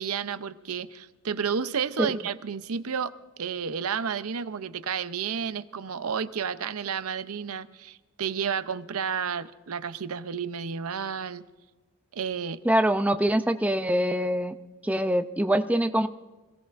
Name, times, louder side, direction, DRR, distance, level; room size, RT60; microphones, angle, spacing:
voice 1, 0.0-3.1 3.4-11.4 12.1-12.6, right 6 dB, 80° right, 13 dB, 0.6 m, -31 dB
voice 2, 12.7-14.5 14.8-16.1, right 1 dB, 5° right, 8 dB, 0.4 m, -24 dB
26.0 x 17.0 x 2.5 m, 1.2 s
head